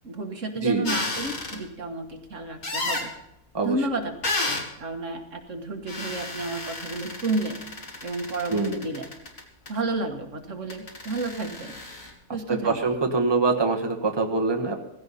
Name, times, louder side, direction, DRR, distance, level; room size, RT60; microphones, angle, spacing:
voice 1, 0.0-3.1 3.6-4.1 4.5-7.6 8.0-9.1 9.7-11.7 12.3-12.8, right 2 dB, 60° right, 4 dB, 1.9 m, -31 dB
sound 1, 0.8-1.6 2.6-3.1 4.2-4.7 5.9-9.7 10.7-12.1, left 2 dB, 70° left, 2.5 m, -32 dB
voice 2, 12.5-14.7, right 3 dB, 20° right, 2 dB, 1.4 m, -24 dB
17.0 x 16.0 x 4.2 m, 0.84 s
omnidirectional pair, 1.5 m